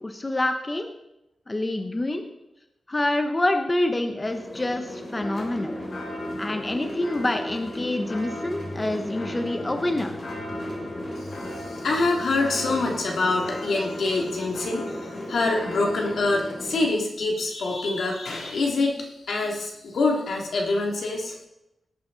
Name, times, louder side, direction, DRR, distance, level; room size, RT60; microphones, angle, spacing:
voice 1, 0.0-0.9 1.5-2.2 2.9-5.8 6.4-10.1, left 1 dB, 20° left, 6 dB, 0.9 m, -27 dB
sound 1, 4.2-16.9, left 1 dB, 40° left, 2.7 m, -38 dB
sound 2, 5.2-16.7, left 1 dB, 60° left, 2.5 m, -37 dB
voice 2, 11.2-21.4, left 3 dB, 75° left, 0 dB, 2.5 m, -26 dB
17.5 x 8.6 x 4.0 m, 0.89 s
wide cardioid pair, 115°, 0 cm